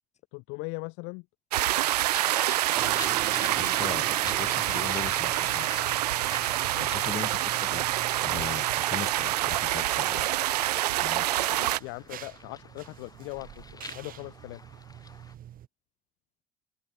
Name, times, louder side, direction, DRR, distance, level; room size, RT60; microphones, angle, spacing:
voice 1, 0.3-1.2 6.6-7.0 8.4-8.5 11.3-14.6, left 30 dB, 60° left, 1.7 m, -40 dB
sound 1, 1.5-11.8, right 15 dB, 75° right, 0.4 m, -27 dB
sound 2, 2.1-15.3, left 4 dB, 20° left, 3.3 m, -46 dB
sound 3, 2.7-15.7, right 11 dB, 45° right, 7.1 m, -44 dB
voice 2, 3.5-5.7 6.8-7.8 8.2-10.3 10.9-11.3, left 7 dB, 35° left, 5.4 m, -39 dB
figure-of-eight pair, 65°, 20 cm